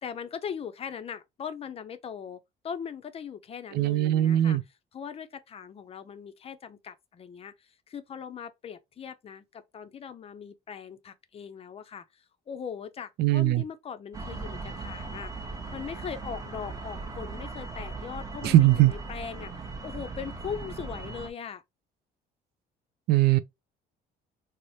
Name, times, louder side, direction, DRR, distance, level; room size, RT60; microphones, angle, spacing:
voice 1, 0.0-4.6 4.9-15.3 15.7-19.5 19.8-21.6, left 7 dB, 35° left, 0.5 m, -40 dB
voice 2, 3.7-4.6 13.2-13.6 18.4-18.9 23.1-23.4, right 14 dB, 75° right, 0.4 m, -20 dB
sound 1, 14.1-21.3, right 3 dB, 20° right, 0.9 m, -38 dB
3.2 x 2.0 x 3.9 m
cardioid pair, 110°, 17 cm